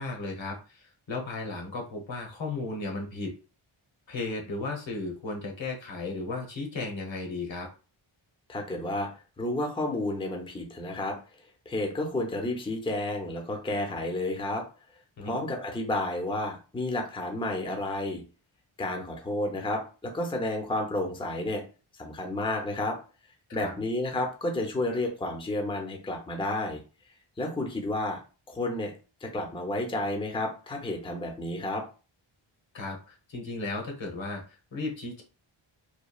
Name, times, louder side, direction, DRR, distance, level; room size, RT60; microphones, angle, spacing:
voice 1, 0.0-3.3 4.1-7.7 15.2-15.4 23.6-23.7 32.7-34.4 34.7-35.2, left 3 dB, 65° left, 1 dB, 1.0 m, -35 dB
voice 2, 8.5-9.1 9.4-11.2 11.7-14.6 15.2-18.2 18.8-21.6 22.0-23.0 23.5-26.8 27.4-28.2 28.5-28.9 29.2-31.8, left 1 dB, 10° left, 2 dB, 0.5 m, -31 dB
3.0 x 2.3 x 2.3 m, 0.34 s
wide cardioid pair, 90°, 49 cm